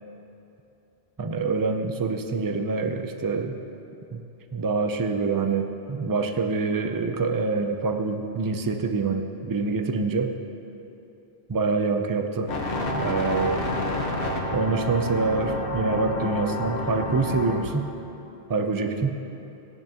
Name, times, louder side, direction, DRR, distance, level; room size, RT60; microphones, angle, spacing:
voice 1, 1.2-3.5 4.1-4.2 4.5-10.4 11.5-12.5 12.9-13.7 14.5-17.9 18.5-19.2, right 4 dB, 30° right, 6 dB, 0.4 m, -26 dB
sound 1, 12.5-17.6, left 1 dB, 65° left, 1.4 m, -29 dB
17.0 x 10.5 x 2.9 m, 3.0 s
omnidirectional pair, 1.0 m